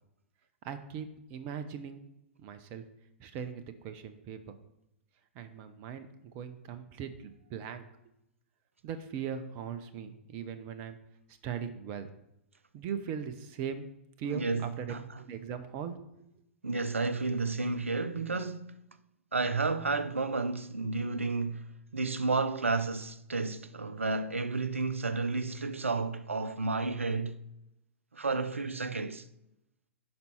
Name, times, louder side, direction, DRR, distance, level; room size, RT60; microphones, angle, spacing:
voice 1, 0.6-2.0 2.4-2.8 3.2-4.6 5.3-7.8 8.8-11.0 11.4-12.1 12.7-13.9 14.2-16.3, right 7 dB, 35° right, 0.7 m, -39 dB
voice 2, 14.2-15.1 16.6-18.8 19.3-27.4 28.1-29.2, right 3 dB, 80° right, 0.6 m, -32 dB
9.6 x 5.4 x 4.3 m
figure-of-eight pair, 105°, 7 cm